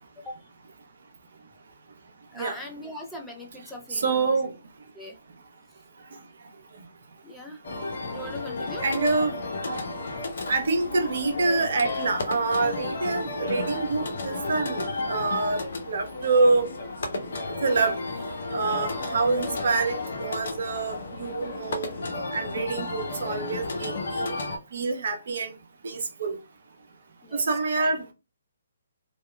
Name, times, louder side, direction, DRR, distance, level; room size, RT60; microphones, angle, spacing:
voice 1, 2.3-4.3 4.9-5.2 7.2-7.6 8.1-8.9 27.2-27.5 27.8-27.9, left 1 dB, 5° left, 0.5 m, -40 dB
voice 2, 3.9-4.5 8.8-9.3 9.7-9.8 10.5-15.6 15.9-16.7 17.6-18.0 18.5-21.9 22.3-24.4 24.7-25.5 25.8-26.4 27.3-28.1, right 3 dB, 60° right, 0.6 m, -26 dB
sound 1, 7.6-24.6, left 2 dB, 60° left, 0.6 m, -33 dB
2.8 x 2.1 x 2.2 m
figure-of-eight pair, 140°, 0 cm